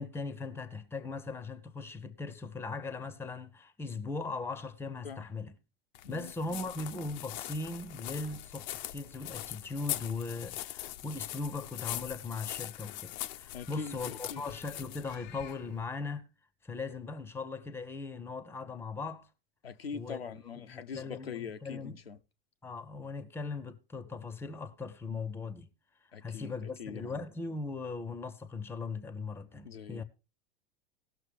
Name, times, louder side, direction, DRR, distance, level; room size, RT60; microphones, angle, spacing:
voice 1, 0.0-5.6 6.1-16.2 16.6-19.3 19.9-22.0 22.6-25.7 26.2-30.0, left 3 dB, 10° left, 0.8 m, -39 dB
voice 2, 6.0-6.6 13.5-14.4 19.6-22.2 26.1-26.5 26.8-27.2 29.6-30.0, left 6 dB, 85° left, 0.8 m, -43 dB
sound 1, 6.0-15.8, left 14 dB, 50° left, 0.7 m, -42 dB
18.5 x 6.3 x 3.4 m
figure-of-eight pair, 90°, 30 cm